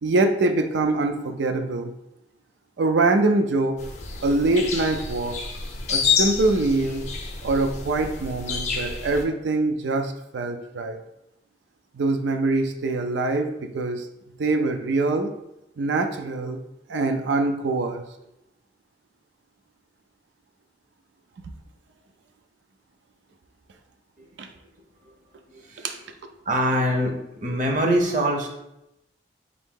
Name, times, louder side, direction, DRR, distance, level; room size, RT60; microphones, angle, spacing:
voice 1, 0.0-1.9 2.8-3.8 4.2-5.4 5.9-7.0 7.4-11.0 11.9-14.1 14.4-15.3 15.8-16.6 16.9-18.0 24.4-24.5 25.8-26.0, right 2 dB, 85° right, 6 dB, 0.4 m, -24 dB
sound 1, 3.8-9.2, left 5 dB, 40° left, 0.5 m, -28 dB
voice 2, 25.5-25.9 26.4-28.5, right 1 dB, 45° right, 1 dB, 0.7 m, -24 dB
3.9 x 2.7 x 3.6 m, 0.84 s
head